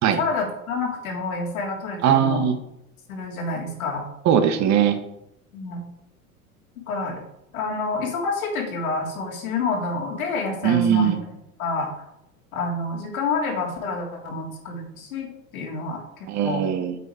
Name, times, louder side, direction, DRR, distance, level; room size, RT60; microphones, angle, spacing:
voice 1, 0.2-2.4 3.1-4.1 5.5-5.8 6.9-7.2 7.5-11.1 11.6-12.0 12.5-16.6, left 3 dB, 75° left, -1 dB, 3.1 m, -28 dB
voice 2, 2.0-2.6 4.2-5.0 10.6-11.2 16.3-17.0, right 9 dB, 40° right, 8 dB, 1.3 m, -20 dB
8.2 x 8.0 x 4.9 m, 0.83 s
hypercardioid pair, 85°, 42 cm